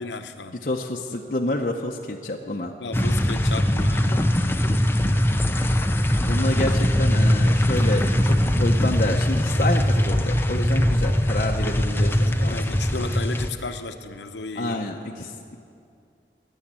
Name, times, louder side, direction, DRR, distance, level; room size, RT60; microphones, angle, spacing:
voice 1, 0.0-0.6 2.8-5.2 11.6-14.8, left 3 dB, 75° left, 7 dB, 0.8 m, -35 dB
voice 2, 0.6-2.7 6.0-12.5 14.6-15.3, left 1 dB, 45° left, 0 dB, 0.7 m, -28 dB
sound 1, 2.9-13.5, equal, 10° left, 0.5 m, -21 dB
sound 2, 7.7-13.4, equal, 5° right, 2.3 m, -40 dB
20.0 x 7.2 x 8.8 m, 2.4 s
head